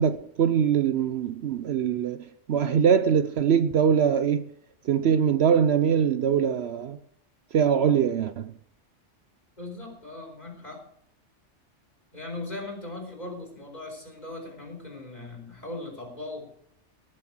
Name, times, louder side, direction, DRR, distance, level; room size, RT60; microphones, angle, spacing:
voice 1, 0.0-2.2 2.5-4.5 4.9-7.0 7.5-8.5, right 7 dB, 65° right, 0.9 m, -22 dB
voice 2, 9.6-10.8 12.1-16.5, left 2 dB, 35° left, 4.8 m, -39 dB
19.0 x 7.6 x 6.1 m
omnidirectional pair, 1.2 m